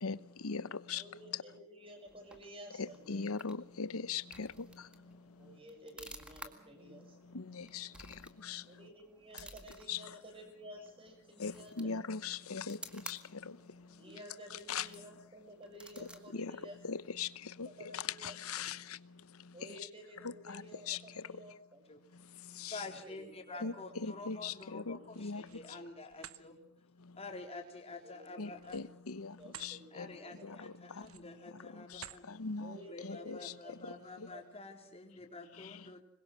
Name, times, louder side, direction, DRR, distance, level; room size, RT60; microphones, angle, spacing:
voice 1, 0.0-1.0 1.3-1.4 2.8-4.9 7.3-8.6 9.3-9.4 9.9-10.0 11.4-13.6 14.7-14.9 16.0-17.7 17.9-19.0 20.2-21.0 21.3-21.4 22.5-22.8 23.6-25.6 28.4-30.1 30.4-31.0 31.5-34.3 35.6-35.8, left 5 dB, 85° left, 0.9 m, -41 dB
voice 2, 0.9-3.3 5.4-7.2 8.7-12.0 14.0-17.0 17.4-18.7 19.5-21.9 22.9-23.6 23.9-24.1 24.7-25.1 25.5-25.8 28.0-28.9 29.4-30.4 31.2-31.3 32.6-33.7 34.3-34.4, equal, 25° right, 6.9 m, -53 dB
sound 1, 1.8-17.4, right 1 dB, 5° right, 2.0 m, -55 dB
voice 3, 22.7-26.6 27.2-28.8 29.9-32.3 32.9-36.0, left 3 dB, 30° left, 4.1 m, -48 dB
sound 2, 25.0-25.7 26.1-26.4 28.6-29.8 30.2-30.4 31.0-31.4 31.9-32.3, right 10 dB, 75° right, 1.1 m, -51 dB
26.0 x 22.0 x 6.4 m
head